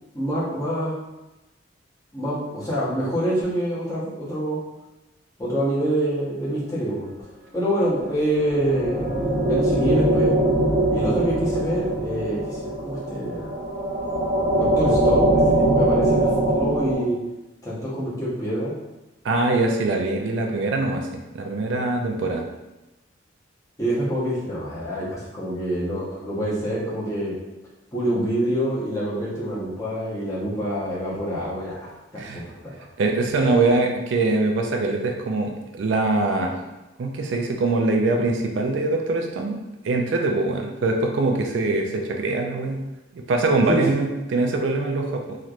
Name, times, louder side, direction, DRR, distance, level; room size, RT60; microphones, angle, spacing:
voice 1, 0.1-0.9 2.1-4.6 5.4-7.1 7.5-9.1 9.5-10.3 10.9-13.5 14.6-17.2 17.6-18.7 23.8-27.3 27.9-32.5 33.3-33.5 43.7-43.8, right 1 dB, 20° left, -8 dB, 1.0 m, -26 dB
sound 1, 8.1-17.0, right 1 dB, 45° right, 0.8 m, -22 dB
voice 2, 19.2-22.4 32.2-32.4 33.0-36.6 37.0-39.6 39.8-42.8 43.1-45.4, right 2 dB, 75° right, 3 dB, 0.4 m, -23 dB
3.2 x 2.9 x 2.4 m, 1.0 s
head